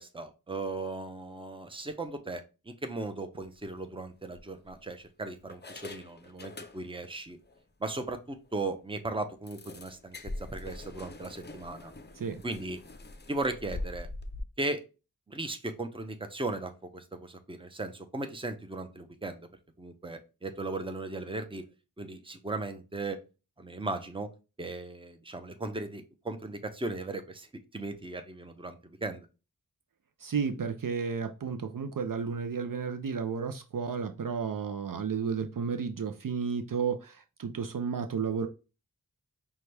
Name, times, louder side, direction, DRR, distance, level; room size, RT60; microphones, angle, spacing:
voice 1, 0.0-7.4 7.8-10.2 10.5-11.9 12.4-12.8 13.3-14.1 14.6-14.8 15.3-19.4 19.8-21.6 22.0-23.2 23.6-24.3 24.6-27.5 27.7-29.3, right 2 dB, 15° right, 7 dB, 0.7 m, -37 dB
sound 1, 3.4-3.7 4.3-5.0 5.5-7.2 7.5-7.6 8.0-8.1 8.5-8.6 9.5-14.4, left 2 dB, 30° left, 0.5 m, -43 dB
voice 2, 30.2-38.5, right 6 dB, 60° right, 7 dB, 0.5 m, -32 dB
5.6 x 2.3 x 3.2 m, 0.30 s
wide cardioid pair, 70°, 37 cm